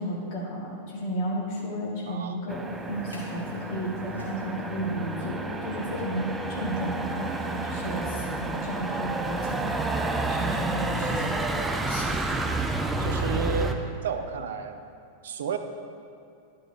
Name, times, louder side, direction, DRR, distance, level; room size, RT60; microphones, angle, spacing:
voice 1, 0.0-2.6 2.9-9.7 10.3-11.3 11.9-12.1, equal, 45° left, -3 dB, 2.0 m, -33 dB
voice 2, 2.1-2.4 13.0-13.8 14.0-14.8 15.2-15.6, right 7 dB, 60° right, 8 dB, 0.5 m, -31 dB
Motor vehicle (road), 2.5-13.7, right 2 dB, 10° right, 0.6 m, -30 dB
sound 1, 2.7-8.0, equal, 75° left, 1.6 m, -44 dB
11.0 x 5.6 x 3.9 m, 2.4 s
figure-of-eight pair, 90°, 0 cm